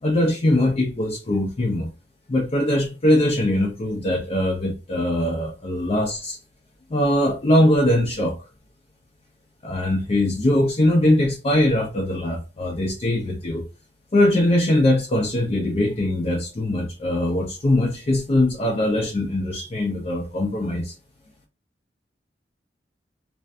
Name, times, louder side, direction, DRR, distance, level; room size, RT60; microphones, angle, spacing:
voice 1, 0.0-1.9 2.3-6.4 6.9-8.4 9.6-13.7 14.1-20.9, left 1 dB, 35° left, 0.5 m, -21 dB
2.5 x 2.1 x 2.5 m
head